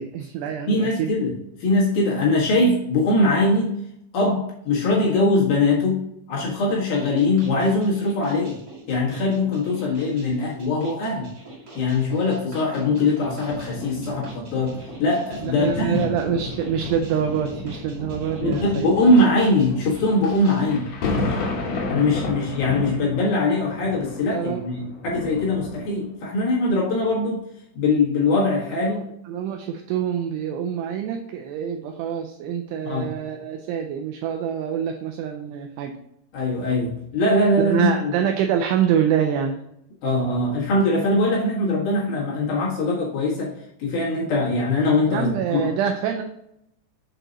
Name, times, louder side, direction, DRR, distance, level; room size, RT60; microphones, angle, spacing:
voice 1, 0.0-1.1 15.4-18.9 24.3-24.6 28.7-35.9 37.6-39.6 45.1-46.2, right 8 dB, 80° right, 4 dB, 2.4 m, -26 dB
voice 2, 0.7-3.8 4.1-8.6 8.9-11.3 11.7-16.1 18.4-20.9 21.9-27.4 27.7-29.1 32.8-33.1 36.3-38.2 40.0-43.5 43.8-45.7, left 2 dB, 60° left, -6 dB, 3.1 m, -22 dB
sound 1, 6.9-20.6, right 2 dB, 50° right, 1.1 m, -44 dB
sound 2, 13.5-26.2 26.9-27.1, left 2 dB, 90° left, 1.4 m, -32 dB
7.5 x 4.6 x 3.9 m, 0.77 s
omnidirectional pair, 5.2 m